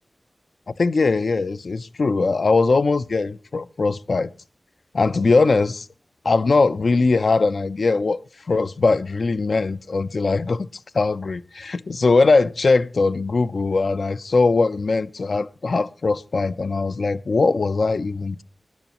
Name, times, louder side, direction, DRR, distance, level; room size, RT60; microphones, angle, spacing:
voice 1, 0.8-4.3 4.9-5.9 6.2-8.2 8.5-10.7 10.9-18.4, left 3 dB, 70° left, 0.6 m, -20 dB
19.5 x 11.0 x 3.0 m
wide cardioid pair, 90°, 0 cm